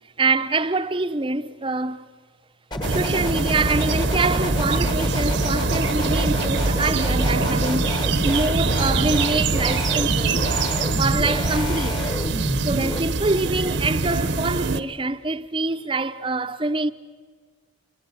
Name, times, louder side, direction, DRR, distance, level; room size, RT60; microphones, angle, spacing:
voice 1, 0.2-2.0 2.9-7.9 8.2-10.5 11.0-12.0 12.6-16.9, right 3 dB, 25° right, 0.7 m, -25 dB
sound 1, 2.7-13.0, left 1 dB, 20° left, 1.3 m, -29 dB
sound 2, 2.8-14.8, right 3 dB, 65° right, 1.0 m, -24 dB
27.5 x 22.5 x 8.5 m
head